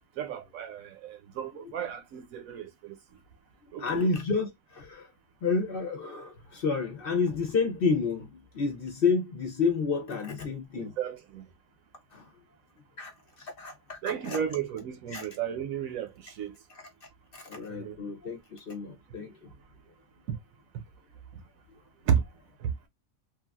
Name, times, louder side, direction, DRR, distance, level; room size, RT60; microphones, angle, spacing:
voice 1, 0.2-3.0 3.7-4.1 10.8-11.4 14.0-16.5 17.7-17.9 20.3-20.4 22.1-22.2 22.6-22.7, right 8 dB, 80° right, 1.1 m, -33 dB
voice 2, 3.8-5.1 5.4-10.9 12.1-12.3 13.0-13.1 13.4-14.4 15.1-15.3 16.7-16.9 17.3-19.5, left 4 dB, 50° left, 0.7 m, -30 dB
3.2 x 2.4 x 2.2 m
omnidirectional pair, 1.4 m